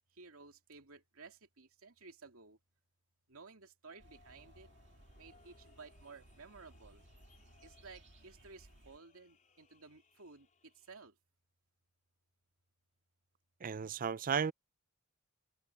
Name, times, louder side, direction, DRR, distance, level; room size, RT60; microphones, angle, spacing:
voice 1, 0.0-2.6 3.3-4.7 5.2-7.0 7.6-11.2, right 4 dB, 80° right, 2.7 m, -56 dB
sound 1, 3.8-11.1, left 4 dB, 35° left, 4.2 m, -69 dB
sound 2, 4.0-9.0, right 1 dB, 55° right, 2.2 m, -61 dB
voice 2, 13.6-14.5, right 6 dB, 40° right, 0.5 m, -34 dB
head